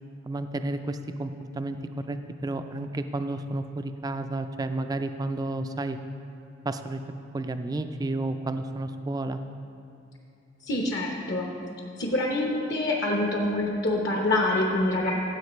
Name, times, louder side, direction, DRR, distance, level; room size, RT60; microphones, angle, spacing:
voice 1, 0.3-1.8 2.1-6.0 6.6-7.0 7.3-9.4, right 2 dB, 20° right, 8 dB, 0.3 m, -31 dB
voice 2, 10.7-11.5 12.0-15.1, left 1 dB, 60° left, -1 dB, 1.0 m, -26 dB
14.0 x 7.8 x 3.1 m, 2.7 s
head